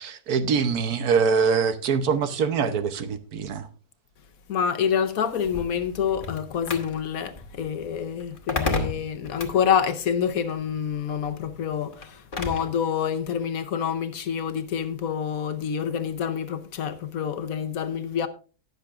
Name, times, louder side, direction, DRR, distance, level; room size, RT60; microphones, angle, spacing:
voice 1, 0.0-3.7, right 6 dB, 70° right, 1.3 m, -24 dB
voice 2, 4.5-18.3, left 8 dB, 65° left, 1.2 m, -27 dB
sound 1, 5.4-12.8, left 3 dB, 35° left, 1.3 m, -34 dB
19.0 x 6.9 x 2.4 m
omnidirectional pair, 1.7 m